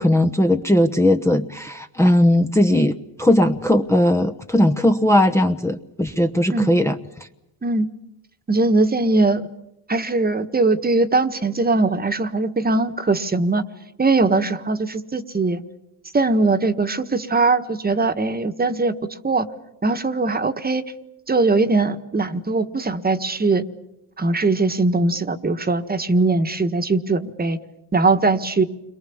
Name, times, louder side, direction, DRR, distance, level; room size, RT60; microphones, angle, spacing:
voice 1, 0.0-6.9, left 1 dB, 5° left, 5 dB, 1.0 m, -18 dB
voice 2, 8.5-9.4 9.9-13.6 14.0-15.6 16.1-18.9 19.2-19.5 19.8-20.8 21.3-23.6 24.2-27.6 27.9-28.6, right 3 dB, 20° right, 9 dB, 1.5 m, -20 dB
29.5 x 23.0 x 7.2 m, 0.89 s
cardioid pair, 110°, 41 cm